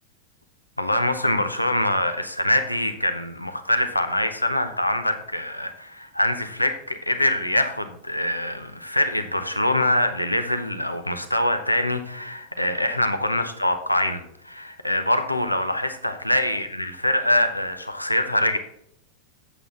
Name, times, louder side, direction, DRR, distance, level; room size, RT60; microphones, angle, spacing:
voice 1, 0.8-18.6, left 1 dB, 85° left, 8 dB, 0.8 m, -24 dB
8.3 x 7.8 x 4.1 m, 0.73 s
figure-of-eight pair, 90°, 0 cm